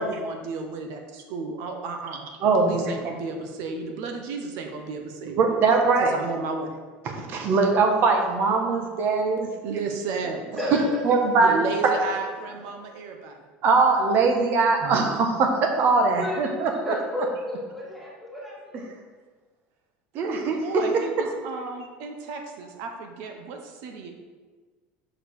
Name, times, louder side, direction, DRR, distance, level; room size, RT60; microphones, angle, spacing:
voice 1, 0.0-2.3 2.6-5.6 6.0-6.8 9.6-10.6 11.4-13.4 20.1-24.1, right 4 dB, 65° right, 4 dB, 1.0 m, -33 dB
voice 2, 2.4-2.9 5.4-6.1 7.0-9.5 11.0-11.6 11.8-12.0 13.6-16.9 20.1-20.8, right 4 dB, 45° right, 3 dB, 1.3 m, -21 dB
voice 3, 10.6-11.2 14.2-14.3 16.2-18.9, left 1 dB, ahead, -7 dB, 1.8 m, -32 dB
6.4 x 5.0 x 6.4 m, 1.4 s
cardioid pair, 150°, 5 cm